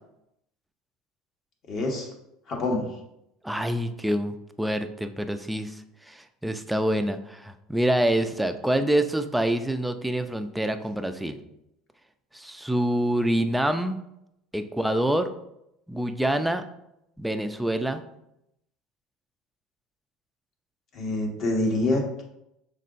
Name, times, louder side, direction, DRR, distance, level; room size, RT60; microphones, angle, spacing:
voice 1, 1.7-2.1 2.5-2.8 20.9-22.2, left 2 dB, 50° left, 0 dB, 1.2 m, -26 dB
voice 2, 3.4-5.8 6.1-11.4 12.3-14.0 14.5-15.3 15.9-16.6 17.2-18.0, right 1 dB, 5° right, 8 dB, 0.3 m, -26 dB
5.4 x 3.8 x 2.5 m, 0.82 s
supercardioid pair, 120°, 0 cm